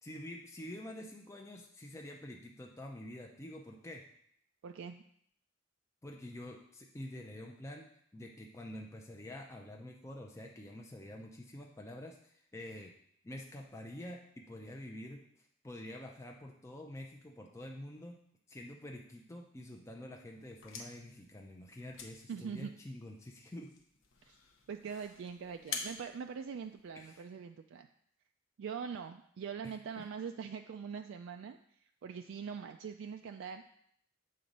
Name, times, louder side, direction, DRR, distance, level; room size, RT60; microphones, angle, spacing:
voice 1, 0.0-4.0 6.0-12.9 13.2-15.2 15.6-18.2 18.5-23.7 26.9-27.3 29.6-30.1, left 1 dB, 15° left, 0 dB, 0.5 m, -47 dB
voice 2, 4.6-5.0 22.3-22.7 24.3-24.4 24.7-27.9 28.6-33.6, right 6 dB, 65° right, 6 dB, 0.3 m, -43 dB
sound 1, 20.4-27.2, left 5 dB, 70° left, 0.9 m, -48 dB
7.6 x 3.9 x 5.2 m, 0.69 s
head